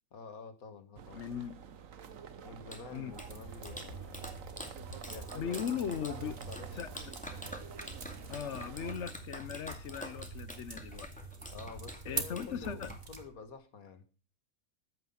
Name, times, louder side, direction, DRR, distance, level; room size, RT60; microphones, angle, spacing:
voice 1, 0.1-1.2 2.4-4.4 5.1-6.9 8.4-8.6 11.5-14.1, left 4 dB, 85° left, 2.2 m, -49 dB
sound 1, 1.0-8.9, right 7 dB, 70° right, 1.5 m, -49 dB
voice 2, 1.1-1.5 2.9-3.1 5.3-6.4 6.7-6.9 7.3-7.4 8.3-11.1 12.1-12.9, left 8 dB, 60° left, 1.1 m, -38 dB
Clapping, 2.4-13.5, equal, 5° left, 2.3 m, -48 dB
sound 2, 3.1-13.2, right 4 dB, 40° right, 2.1 m, -45 dB
14.5 x 9.5 x 5.8 m
omnidirectional pair, 1.5 m